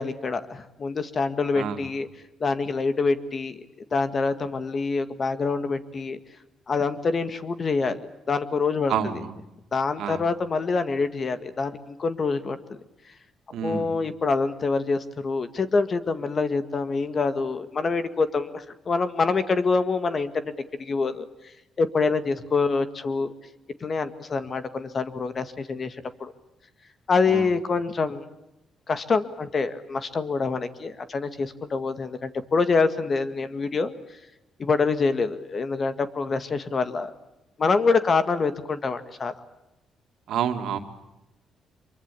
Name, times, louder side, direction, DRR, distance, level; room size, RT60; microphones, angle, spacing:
voice 1, 0.0-2.1 2.4-3.6 3.9-6.2 6.7-8.0 8.3-8.9 9.7-12.6 13.6-20.5 20.8-21.3 21.8-23.3 23.8-26.3 27.1-28.3 28.9-34.0 34.6-37.1 37.6-39.3, left 4 dB, 40° left, 11 dB, 1.9 m, -25 dB
voice 2, 1.5-1.9 8.9-9.4 10.0-10.2 13.5-13.9 27.3-27.5 40.3-40.8, right 8 dB, 80° right, 6 dB, 2.5 m, -28 dB
25.5 x 23.5 x 8.6 m, 0.92 s
cardioid pair, 90°, 0 cm